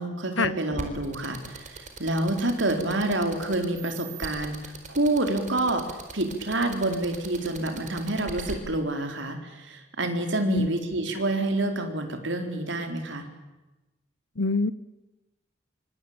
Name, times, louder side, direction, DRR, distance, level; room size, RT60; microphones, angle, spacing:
voice 1, 0.0-13.3, right 2 dB, 70° right, 5 dB, 4.3 m, -28 dB
sound 1, 0.8-8.5, right 3 dB, 40° right, 4.4 m, -38 dB
voice 2, 14.4-14.7, left 3 dB, 85° left, 17 dB, 1.2 m, -24 dB
26.0 x 24.0 x 8.9 m, 1.1 s
head